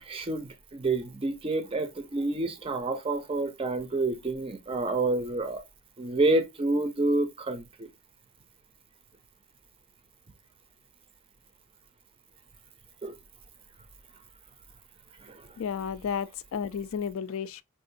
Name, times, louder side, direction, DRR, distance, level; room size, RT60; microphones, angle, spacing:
voice 1, 0.0-5.6 6.0-7.9 13.0-13.2 15.2-15.5, right 2 dB, 25° right, 0.4 m, -28 dB
voice 2, 15.6-17.6, left 7 dB, 65° left, 0.3 m, -32 dB
3.6 x 2.4 x 2.5 m
head